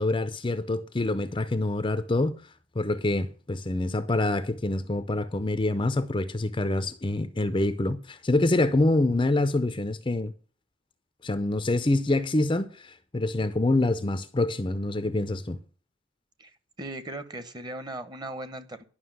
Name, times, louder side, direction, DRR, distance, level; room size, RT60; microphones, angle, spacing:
voice 1, 0.0-2.4 2.7-10.3 11.2-15.6, left 2 dB, 25° left, 0.6 m, -26 dB
voice 2, 16.4-18.8, right 1 dB, 20° right, 1.0 m, -38 dB
11.5 x 6.0 x 7.4 m
head